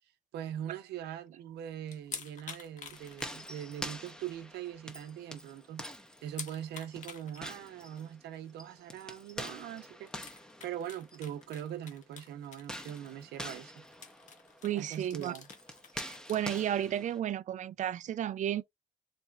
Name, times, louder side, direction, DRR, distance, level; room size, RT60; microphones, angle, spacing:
voice 1, 0.3-5.9 6.2-13.8 14.8-15.5, right 10 dB, 75° right, 0.8 m, -42 dB
sound 1, 1.9-3.9 4.2-4.3 4.7-4.8 5.1-5.2 6.3-7.5 8.0-8.1 9.4-9.5 10.1-13.3 13.6-13.7 13.9-16.4, left 6 dB, 45° left, 1.1 m, -48 dB
sound 2, 2.9-11.6 12.6-17.2, equal, 5° left, 0.7 m, -46 dB
voice 2, 14.6-15.3 15.9-18.6, right 11 dB, 45° right, 0.4 m, -33 dB
4.2 x 2.2 x 3.5 m
cardioid pair, 110°, 17 cm